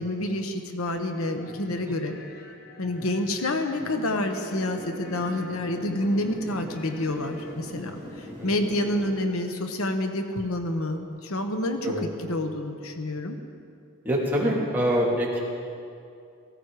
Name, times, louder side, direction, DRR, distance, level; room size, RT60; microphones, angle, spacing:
voice 1, 0.0-2.1 2.8-11.9 12.3-13.4, left 1 dB, 75° left, 6 dB, 1.1 m, -28 dB
sound 1, 0.9-7.5, left 2 dB, 45° left, 1.2 m, -47 dB
sound 2, 4.0-9.1, equal, 15° left, 4.5 m, -41 dB
voice 2, 14.0-15.4, equal, 10° right, -6 dB, 2.9 m, -25 dB
17.5 x 15.5 x 4.9 m, 2.5 s
head